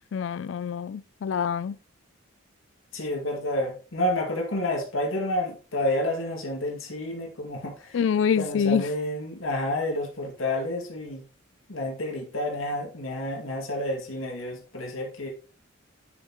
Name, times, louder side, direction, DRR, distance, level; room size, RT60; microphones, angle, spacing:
voice 1, 0.1-1.8 7.9-8.9, left 7 dB, 65° left, 0.3 m, -26 dB
voice 2, 2.9-8.0 8.4-11.2 11.7-15.3, left 1 dB, 85° left, 2.3 m, -29 dB
8.8 x 7.2 x 3.0 m
head